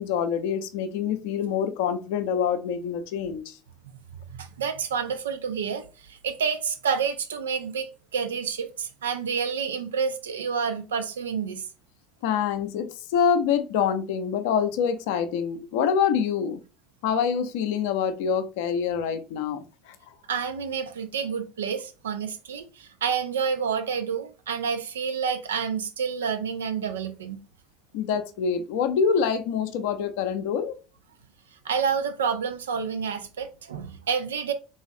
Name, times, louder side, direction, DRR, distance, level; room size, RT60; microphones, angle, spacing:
voice 1, 0.0-3.6 12.2-16.6 17.0-20.1 27.9-30.7, left 7 dB, 65° left, 0.5 m, -26 dB
voice 2, 4.3-11.6 20.3-27.4 31.6-34.5, right 6 dB, 75° right, 0.5 m, -29 dB
3.5 x 3.1 x 2.5 m
figure-of-eight pair, 65°, 0 cm